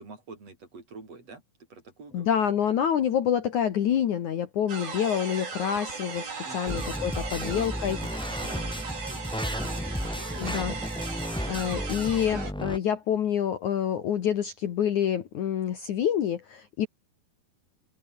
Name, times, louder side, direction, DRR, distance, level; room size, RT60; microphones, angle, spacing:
voice 1, 0.0-1.4 1.7-2.4 6.4-6.8 7.1-8.1 8.4-10.3, right 4 dB, 40° right, 7.3 m, -47 dB
voice 2, 2.1-6.2 6.5-8.0 10.4-10.8 11.5-16.9, left 9 dB, 60° left, 2.7 m, -27 dB
sound 1, 4.7-12.5, right 5 dB, 65° right, 7.9 m, -37 dB
sound 2, 6.7-12.8, equal, 5° left, 0.5 m, -33 dB
open air
omnidirectional pair, 4.5 m